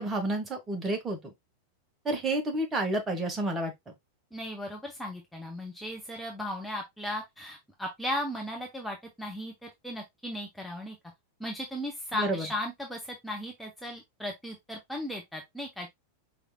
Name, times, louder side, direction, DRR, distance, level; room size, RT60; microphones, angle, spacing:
voice 1, 0.0-1.3 2.0-3.7 12.1-12.5, right 2 dB, 20° right, 1.3 m, -30 dB
voice 2, 4.3-11.0 11.4-15.9, left 1 dB, 5° left, 0.9 m, -36 dB
5.0 x 3.4 x 2.3 m
figure-of-eight pair, 90°, 0 cm